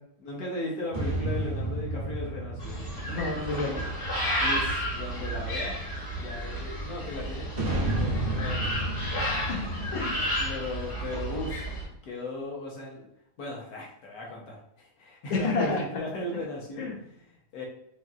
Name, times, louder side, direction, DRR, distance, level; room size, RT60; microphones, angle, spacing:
voice 1, 0.2-2.9 4.4-5.8 6.1-8.9 10.2-13.1 13.4-17.6, left 2 dB, 55° left, -2 dB, 1.2 m, -37 dB
sound 1, 0.9-4.6 7.5-11.3, right 2 dB, 75° right, 0.4 m, -32 dB
sound 2, 2.6-11.8, equal, 25° left, 0.8 m, -32 dB
voice 2, 3.1-3.8 9.3-10.4 15.3-15.8 16.8-17.0, left 3 dB, 80° left, 0 dB, 1.6 m, -30 dB
4.4 x 3.0 x 2.4 m, 0.76 s
omnidirectional pair, 2.1 m